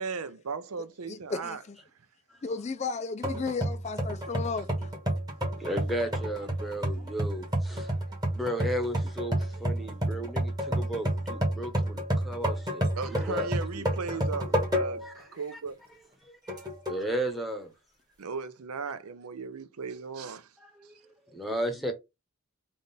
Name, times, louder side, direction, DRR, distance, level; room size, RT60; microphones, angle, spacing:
voice 1, 0.0-1.6 6.9-7.0 7.3-7.4 10.4-10.5 13.0-15.8 18.2-20.5, right 5 dB, 90° right, 0.6 m, -37 dB
voice 2, 1.1-1.8 2.4-4.7 21.5-21.6, left 4 dB, 30° left, 0.3 m, -34 dB
sound 1, 3.2-15.2 15.6-15.7 16.5-17.1, equal, 20° right, 1.1 m, -30 dB
voice 3, 5.6-7.9 8.3-13.9 15.0-15.2 16.5-17.7 20.8-20.9 21.3-21.9, right 1 dB, ahead, 0.9 m, -34 dB
3.6 x 2.5 x 3.9 m
head